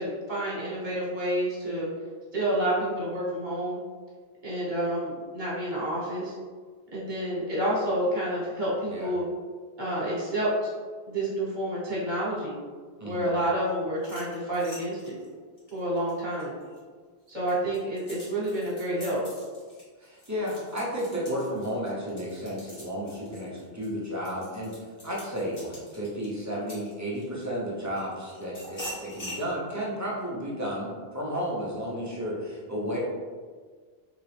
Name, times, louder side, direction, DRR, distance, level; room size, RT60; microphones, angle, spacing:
voice 1, 0.0-1.9 2.3-3.8 4.4-6.3 6.9-9.2 9.8-10.7 11.1-12.6 13.0-15.2 15.7-16.5 17.3-19.2, right 1 dB, 45° right, -6 dB, 1.4 m, -29 dB
voice 2, 13.0-13.3 20.0-24.8 25.0-33.0, equal, 20° right, -6 dB, 0.8 m, -33 dB
sound 1, 13.9-16.8 17.3-27.4 28.0-29.4, equal, 35° left, 1.3 m, -45 dB
3.6 x 3.0 x 3.4 m, 1.6 s
omnidirectional pair, 1.1 m